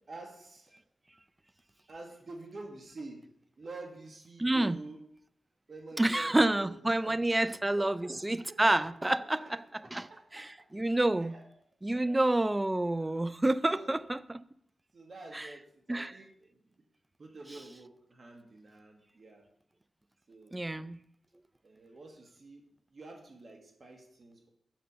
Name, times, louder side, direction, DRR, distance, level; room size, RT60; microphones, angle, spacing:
voice 1, 0.1-0.8 1.9-3.3 3.6-5.0 5.7-10.7 11.2-11.4 11.9-12.2 13.0-13.2 13.7-14.0 14.9-16.6 17.2-19.5 20.3-20.6 21.6-24.5, right 2 dB, 50° right, 1.7 m, -49 dB
voice 2, 4.4-4.8 6.0-9.6 9.9-10.1 10.3-10.5 10.7-11.4 11.8-14.2 15.3-15.5 15.9-16.1 20.5-21.0, right 1 dB, 15° right, 0.4 m, -28 dB
7.7 x 6.7 x 6.8 m
cardioid pair, 85°, 0 cm